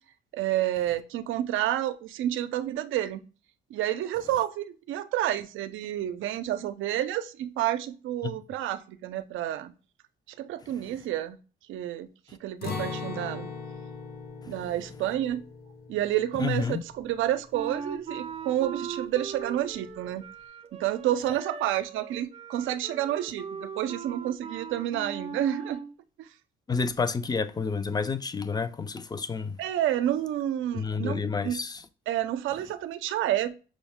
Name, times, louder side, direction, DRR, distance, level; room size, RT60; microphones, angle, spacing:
voice 1, 0.3-3.2 3.7-9.7 10.4-11.4 11.7-12.1 12.4-13.5 14.5-15.4 15.9-20.2 20.8-25.8 26.2-26.3 29.6-31.6 32.1-33.6, right 12 dB, 80° right, 0.5 m, -29 dB
voice 2, 10.6-10.9 12.3-12.4 14.4-14.6 16.4-16.8 26.7-29.6 30.7-31.9, left 5 dB, 20° left, 0.4 m, -30 dB
Acoustic guitar, 12.6-18.5 18.8-19.0 19.5-19.9, left 5 dB, 50° left, 0.9 m, -40 dB
Wind instrument woodwind instrument, 17.5-25.9, right 6 dB, 30° right, 0.5 m, -39 dB
6.2 x 2.1 x 3.4 m
cardioid pair, 90°, 20 cm